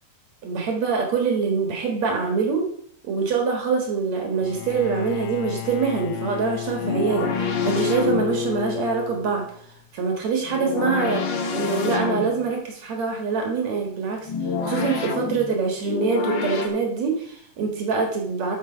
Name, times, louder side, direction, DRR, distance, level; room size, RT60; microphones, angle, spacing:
voice 1, 0.4-2.7 3.0-9.5 9.9-14.3 14.6-18.6, right 5 dB, 65° right, 2 dB, 2.7 m, -24 dB
Bowed string instrument, 4.3-9.6, left 11 dB, 85° left, 1.4 m, -31 dB
sound 1, 6.8-8.5 10.4-12.5 14.2-16.7, left 4 dB, 55° left, 1.4 m, -27 dB
13.0 x 6.0 x 5.0 m, 0.64 s
omnidirectional pair, 3.6 m